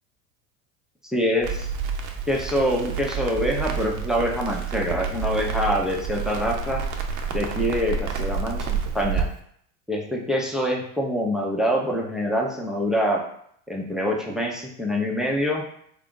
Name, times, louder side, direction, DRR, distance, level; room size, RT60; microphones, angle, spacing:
voice 1, 1.1-1.7 2.3-6.8 7.3-9.3 9.9-13.2 13.7-15.6, equal, ahead, -1 dB, 0.5 m, -25 dB
Crackle, 1.4-9.2, right 6 dB, 45° right, 0.6 m, -29 dB
3.6 x 2.4 x 3.7 m, 0.67 s
hypercardioid pair, 90°, 43 cm